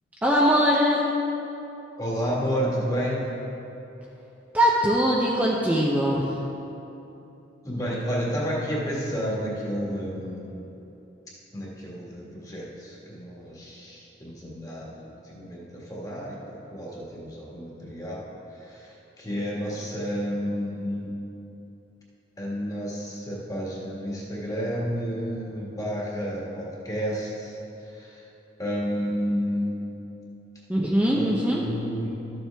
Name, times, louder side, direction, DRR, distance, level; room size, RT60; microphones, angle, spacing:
voice 1, 0.2-1.1 4.5-6.4 30.7-31.6, equal, 10° right, -5 dB, 0.6 m, -21 dB
voice 2, 2.0-3.2 7.6-10.7 11.5-21.1 22.4-28.2 28.6-29.8 31.1-32.1, equal, 20° left, -4 dB, 1.6 m, -31 dB
12.5 x 7.3 x 3.4 m, 2.9 s
head